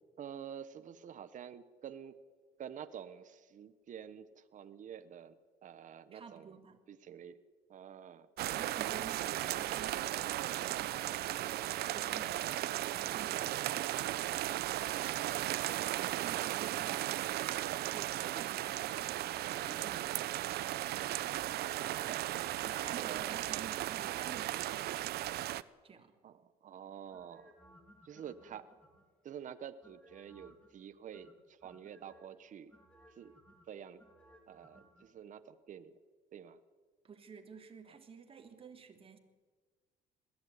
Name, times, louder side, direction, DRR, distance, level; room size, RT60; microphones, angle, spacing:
voice 1, 0.2-2.2 2.6-5.4 5.6-6.6 6.9-7.4 7.7-8.3 8.7-9.1 15.5-16.3 21.6-22.4 23.0-23.3 26.2-27.5 28.0-28.7 29.2-32.7 33.1-33.4 33.7-34.0 34.5-36.0 36.3-36.6, right 8 dB, 50° right, 10 dB, 1.2 m, -49 dB
voice 2, 6.1-6.8 8.6-10.4 10.8-15.2 16.0-17.4 17.9-20.5 22.6-24.9 25.8-26.2 37.0-39.2, right 6 dB, 35° right, 5 dB, 3.0 m, -52 dB
sound 1, 8.4-25.6, right 14 dB, 70° right, 0.8 m, -36 dB
sound 2, 17.0-18.8 19.5-20.3 20.7-22.2 22.6-24.3 27.1-29.2 29.8-30.7 31.1-32.3 32.7-35.1 35.3-35.4, equal, 5° left, 3.7 m, -63 dB
21.0 x 15.0 x 9.6 m, 1.4 s
cardioid pair, 110°, 17 cm